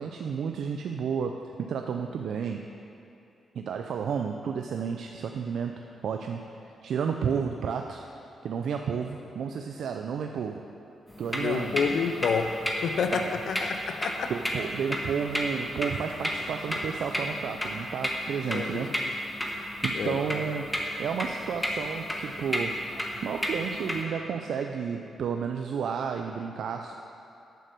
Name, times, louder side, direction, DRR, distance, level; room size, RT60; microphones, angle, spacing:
voice 1, 0.0-2.7 3.5-6.5 6.8-8.1 8.4-10.6 11.2-12.0 13.1-13.3 14.3-18.9 19.8-20.7 21.0-26.9, right 6 dB, 75° right, 4 dB, 0.4 m, -32 dB
sound 1, 11.1-24.0, equal, 10° left, 1.5 m, -33 dB
voice 2, 11.3-14.3 18.5-19.1 19.9-20.2, left 6 dB, 75° left, 7 dB, 0.4 m, -29 dB
9.3 x 6.7 x 6.5 m, 2.7 s
cardioid pair, 65°, 0 cm